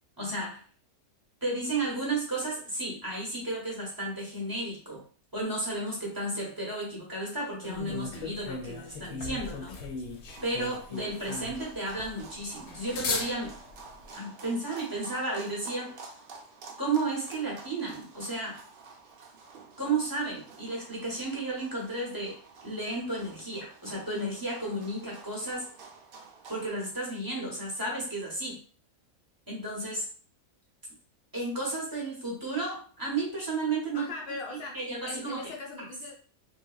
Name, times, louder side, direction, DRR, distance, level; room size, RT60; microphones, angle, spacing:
voice 1, 0.2-0.6 1.4-5.0 5.3-9.8 10.4-13.6 14.1-16.0 16.8-18.6 19.8-25.6 26.5-28.6 29.5-30.0 31.3-34.1 34.7-35.5 35.8-35.9, right 2 dB, 25° right, -3 dB, 0.5 m, -33 dB
sound 1, 7.6-14.0, left 4 dB, 85° left, 1.0 m, -37 dB
sound 2, 10.3-26.7, right 4 dB, 70° right, 0.5 m, -50 dB
voice 2, 33.9-34.8 35.0-36.1, left 3 dB, 65° left, -1 dB, 0.6 m, -40 dB
3.4 x 2.1 x 2.3 m, 0.41 s
omnidirectional pair, 1.5 m